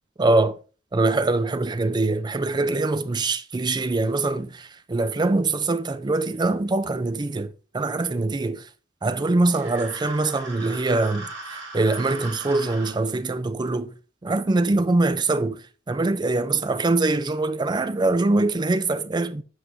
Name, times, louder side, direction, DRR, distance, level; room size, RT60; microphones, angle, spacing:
voice 1, 0.2-0.6 0.9-8.7 9.0-13.9 14.2-19.4, right 2 dB, 20° right, 0.4 m, -23 dB
sound 1, 9.4-12.9, right 2 dB, 65° right, 1.9 m, -38 dB
7.9 x 6.1 x 2.7 m
head